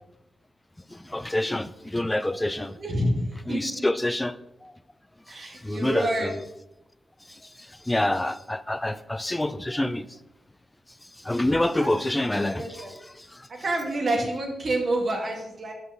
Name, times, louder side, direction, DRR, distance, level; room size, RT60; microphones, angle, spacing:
voice 1, 0.9-2.8 3.5-4.3 4.6-4.7 5.6-6.4 7.9-10.1 11.2-13.4, left 1 dB, 15° left, 14 dB, 0.4 m, -27 dB
voice 2, 2.8-3.8 5.3-6.3 11.7-12.9 13.5-15.7, right 1 dB, 55° right, 1 dB, 1.6 m, -28 dB
6.2 x 5.5 x 4.0 m, 0.87 s
cardioid pair, 60°, 0 cm